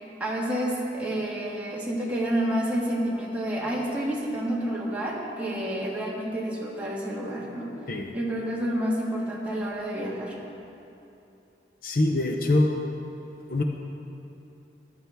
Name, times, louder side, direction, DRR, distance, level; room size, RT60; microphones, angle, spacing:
voice 1, 0.2-7.7 8.1-10.4, right 1 dB, 10° right, -5 dB, 1.6 m, -29 dB
voice 2, 11.8-12.7 13.5-13.6, left 2 dB, 50° left, 3 dB, 0.6 m, -23 dB
15.0 x 11.0 x 3.5 m, 2.8 s
head